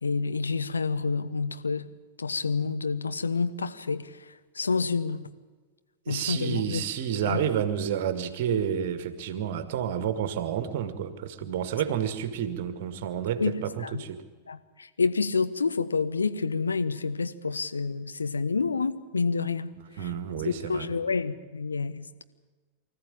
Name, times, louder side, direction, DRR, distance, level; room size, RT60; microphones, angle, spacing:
voice 1, 0.0-1.9 2.2-5.3 6.1-6.9 7.2-7.4 13.4-14.0 14.5-20.1 20.4-22.2, left 4 dB, 75° left, 11 dB, 1.1 m, -29 dB
voice 2, 6.1-14.2 20.0-20.9, right 9 dB, 50° right, 11 dB, 1.9 m, -30 dB
24.0 x 14.0 x 8.9 m, 1.4 s
figure-of-eight pair, 90°, 0 cm